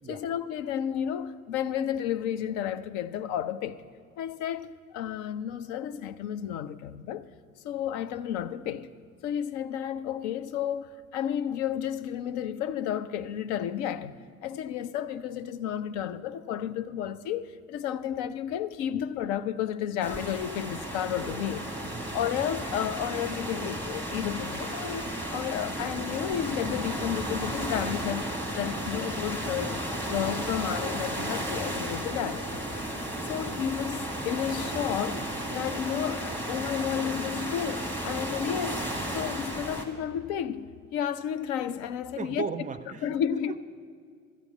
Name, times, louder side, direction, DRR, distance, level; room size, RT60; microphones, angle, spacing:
voice 1, 0.1-3.8 4.2-7.3 7.6-8.9 9.2-14.1 14.4-21.6 22.1-32.6 33.3-35.3 35.5-38.8 39.1-42.5 43.0-43.5, left 9 dB, 55° left, 0.6 m, -32 dB
sound 1, 20.0-39.9, right 1 dB, 5° left, 1.8 m, -33 dB
voice 2, 21.8-22.3 42.2-43.6, right 6 dB, 20° right, 0.5 m, -37 dB
13.0 x 8.4 x 6.8 m
figure-of-eight pair, 55°, 40 cm